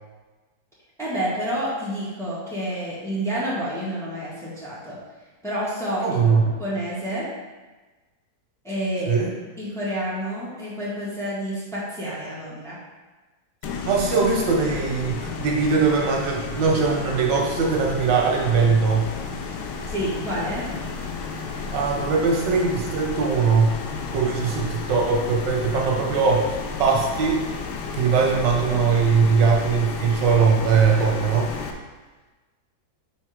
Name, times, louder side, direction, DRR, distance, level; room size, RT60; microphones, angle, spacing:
voice 1, 1.0-5.0 5.4-6.2 6.6-7.3 8.6-9.2 9.6-12.8 19.9-20.7, equal, ahead, -9 dB, 1.6 m, -29 dB
voice 2, 6.0-6.5 9.1-9.3 13.9-19.1 21.7-23.8 24.1-26.5 26.8-27.4 27.9-31.5, right 5 dB, 85° right, -1 dB, 1.6 m, -21 dB
sound 1, 13.6-31.7, left 5 dB, 80° left, 1.2 m, -32 dB
5.5 x 3.5 x 4.9 m, 1.2 s
omnidirectional pair, 1.9 m